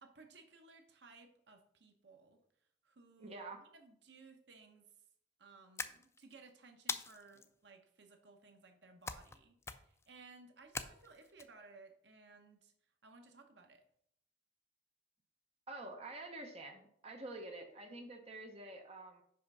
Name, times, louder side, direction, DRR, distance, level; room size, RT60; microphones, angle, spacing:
voice 1, 0.0-2.4 2.8-4.9 5.4-12.7 13.0-13.8, right 3 dB, 65° right, 5 dB, 1.0 m, -60 dB
voice 2, 3.2-3.6 15.7-19.2, right 2 dB, 35° right, 3 dB, 0.9 m, -48 dB
sound 1, 5.8-6.4 6.9-7.5 9.1-9.4 9.6-10.1 10.7-11.4, left 4 dB, 15° left, 0.4 m, -42 dB
5.6 x 5.1 x 5.5 m, 0.70 s
head